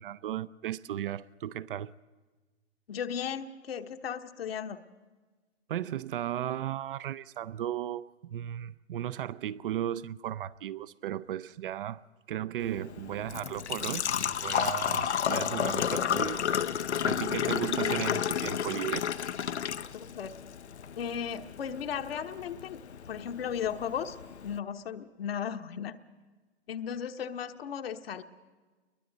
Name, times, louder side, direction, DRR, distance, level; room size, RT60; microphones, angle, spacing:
voice 1, 0.0-1.9 5.7-19.1, right 11 dB, 55° right, 0.6 m, -36 dB
voice 2, 2.9-4.8 19.9-20.3 21.0-22.8 23.1-24.2 24.4-26.0 26.7-28.2, left 8 dB, 65° left, 1.2 m, -36 dB
Engine / Trickle dribble / Fill (with liquid), 12.6-24.6, left 8 dB, 80° left, 0.8 m, -32 dB
29.5 x 22.0 x 4.0 m
hypercardioid pair, 125°, 33 cm